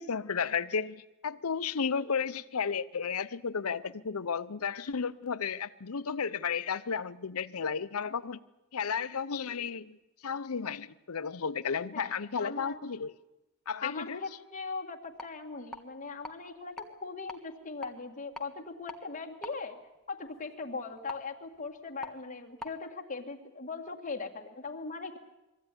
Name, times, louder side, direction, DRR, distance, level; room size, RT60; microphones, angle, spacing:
voice 1, 0.0-8.4 8.7-10.0 10.2-13.1 13.7-14.2, left 6 dB, 80° left, 0.7 m, -33 dB
voice 2, 11.9-12.8 13.8-19.8 20.1-25.2, left 4 dB, 35° left, 2.0 m, -40 dB
sound 1, 15.0-22.8, left 1 dB, 5° left, 1.4 m, -49 dB
22.0 x 15.0 x 9.9 m
head